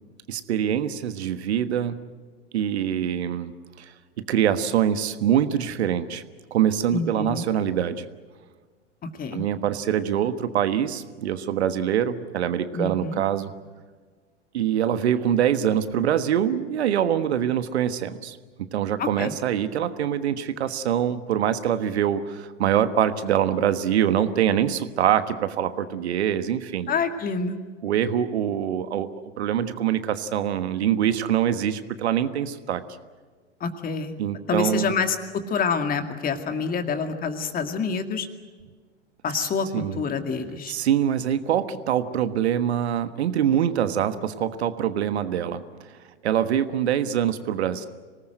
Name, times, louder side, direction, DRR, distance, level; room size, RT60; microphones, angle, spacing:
voice 1, 0.3-2.0 2.5-3.5 3.8-3.9 4.3-6.2 6.5-8.0 9.3-13.5 14.5-26.9 27.8-29.1 29.4-32.8 34.2-34.9 39.3-39.5 39.7-40.0 40.7-45.6 46.2-47.9, right 9 dB, 60° right, 12 dB, 1.4 m, -24 dB
voice 2, 6.9-7.5 9.2-9.4 12.7-13.2 19.0-19.3 26.9-27.6 33.6-34.1 34.5-35.2 35.5-38.3 39.2-39.7 40.0-40.7, left 5 dB, 25° left, 7 dB, 2.2 m, -27 dB
26.0 x 19.0 x 7.9 m, 1.5 s
figure-of-eight pair, 100°, 36 cm